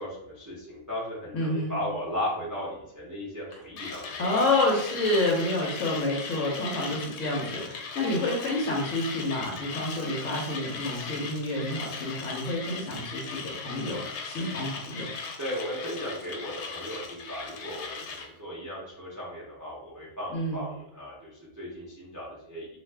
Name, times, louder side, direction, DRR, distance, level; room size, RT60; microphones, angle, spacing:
voice 1, 0.0-4.5 15.4-22.7, left 1 dB, 25° right, -6 dB, 0.4 m, -36 dB
voice 2, 1.3-1.7 4.2-15.1 20.3-20.6, left 2 dB, 60° left, -2 dB, 0.9 m, -29 dB
Mechanisms, 3.8-18.3, left 5 dB, 80° left, 1.2 m, -38 dB
2.5 x 2.4 x 3.3 m, 0.81 s
omnidirectional pair, 1.8 m